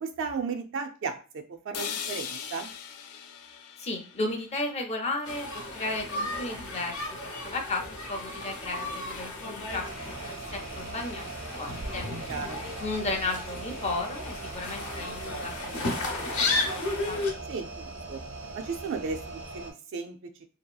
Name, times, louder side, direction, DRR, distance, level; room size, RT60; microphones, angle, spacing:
voice 1, 0.0-1.2 1.7-2.7 12.3-12.6 17.5-18.2 18.5-20.2, right 5 dB, 60° right, 6 dB, 0.4 m, -34 dB
sound 1, 1.7-5.8, left 8 dB, 90° left, 0.4 m, -40 dB
voice 2, 3.8-5.5 5.7-11.3 11.6-12.1 12.8-17.2, left 2 dB, 30° left, 3 dB, 0.5 m, -34 dB
sound 2, 5.2-17.3, left 2 dB, 70° left, 0.7 m, -34 dB
sound 3, 9.7-19.7, right 3 dB, 80° right, 0.7 m, -41 dB
2.7 x 2.3 x 2.3 m, 0.37 s
head